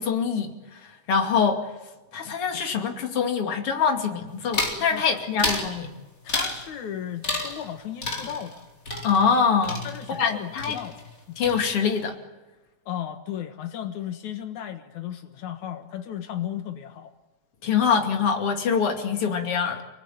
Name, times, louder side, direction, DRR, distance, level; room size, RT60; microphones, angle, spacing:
voice 1, 0.0-1.7 2.1-5.9 9.0-9.8 10.2-10.8 11.4-12.2 17.6-19.8, left 6 dB, 50° left, 4 dB, 3.4 m, -24 dB
sound 1, 4.5-4.9 5.4-5.7 6.3-6.7 7.2-7.7 8.0-10.3 10.6-11.2 11.4-12.0, left 2 dB, 25° left, 4.4 m, -30 dB
voice 2, 6.2-8.6 9.8-11.0 11.3-11.4 12.9-17.1, left 10 dB, 80° left, 7 dB, 2.8 m, -35 dB
29.5 x 19.5 x 9.3 m, 1.2 s
omnidirectional pair, 3.3 m